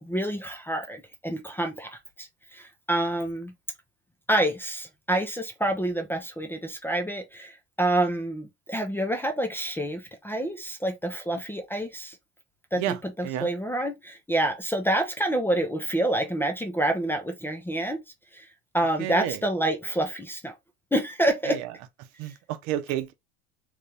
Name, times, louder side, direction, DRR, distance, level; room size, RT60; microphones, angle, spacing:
voice 1, 0.0-1.9 2.2-3.5 4.3-12.2 12.7-18.0 18.3-18.5 18.7-20.5 20.9-21.6, right 1 dB, 5° left, 0.6 m, -28 dB
voice 2, 19.0-19.4 21.5-21.7 22.2-23.1, right 12 dB, 55° right, 0.8 m, -30 dB
3.2 x 2.6 x 3.5 m
supercardioid pair, 115°, 35 cm